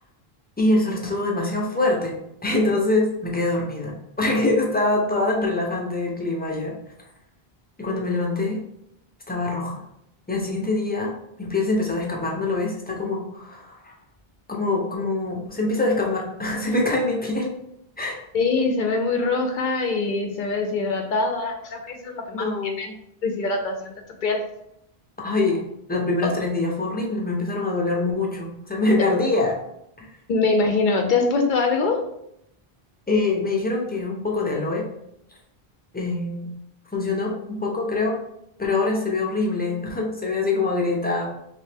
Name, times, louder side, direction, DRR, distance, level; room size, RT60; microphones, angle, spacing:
voice 1, 0.6-6.8 7.8-8.6 9.3-9.8 10.3-11.1 11.4-13.9 14.5-17.5 18.0-18.2 22.3-22.9 25.2-25.6 25.9-29.6 30.0-30.1 33.1-34.8 35.9-36.5 36.9-38.2 38.6-41.3, left 2 dB, 15° left, -1 dB, 0.4 m, -24 dB
voice 2, 18.3-22.9 23.2-24.4 30.3-32.0, left 3 dB, 60° left, 4 dB, 0.6 m, -23 dB
3.2 x 2.7 x 3.3 m, 0.77 s
omnidirectional pair, 1.1 m